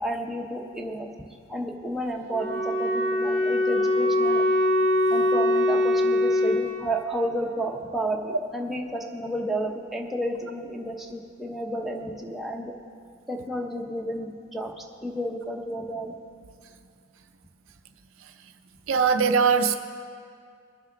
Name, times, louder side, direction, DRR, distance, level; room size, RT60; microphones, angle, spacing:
voice 1, 0.0-1.1 1.5-4.4 5.1-12.7 13.3-16.2, right 1 dB, ahead, -1 dB, 0.9 m, -31 dB
Wind instrument woodwind instrument, 2.3-6.7, left 1 dB, 30° left, 2.3 m, -22 dB
voice 2, 18.9-19.8, right 5 dB, 65° right, 8 dB, 0.5 m, -20 dB
21.0 x 7.3 x 3.9 m, 2.2 s
head